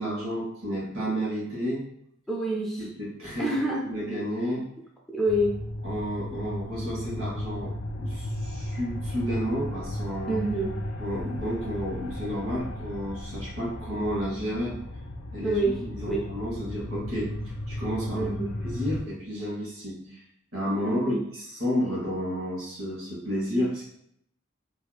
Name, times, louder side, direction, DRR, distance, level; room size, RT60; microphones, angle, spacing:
voice 1, 0.0-1.8 2.8-3.5 3.8-4.6 5.8-10.4 11.0-14.8 15.3-17.3 17.7-18.3 18.6-20.2 20.5-23.8, equal, 85° right, -5 dB, 1.4 m, -31 dB
voice 2, 2.3-2.9 3.4-3.9 5.1-5.6 10.3-10.8 15.4-15.8 16.1-16.2 18.1-18.5 20.8-21.2, right 1 dB, ahead, -4 dB, 0.5 m, -27 dB
sound 1, 5.3-19.0, left 1 dB, 75° left, 0.5 m, -35 dB
3.1 x 2.7 x 2.3 m, 0.72 s
head